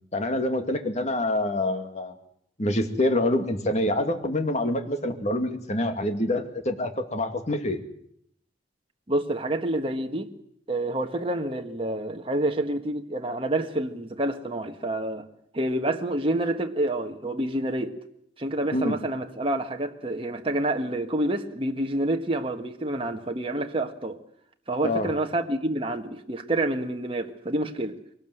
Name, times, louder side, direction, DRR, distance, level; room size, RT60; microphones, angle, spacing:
voice 1, 0.1-2.2 2.6-7.8 18.7-19.0 24.8-25.2, left 1 dB, 40° left, 7 dB, 2.4 m, -26 dB
voice 2, 9.1-10.3 10.7-15.3 15.5-17.9 18.4-24.2 24.7-27.9, right 1 dB, 30° right, 4 dB, 1.5 m, -28 dB
23.0 x 18.5 x 7.9 m, 0.68 s
head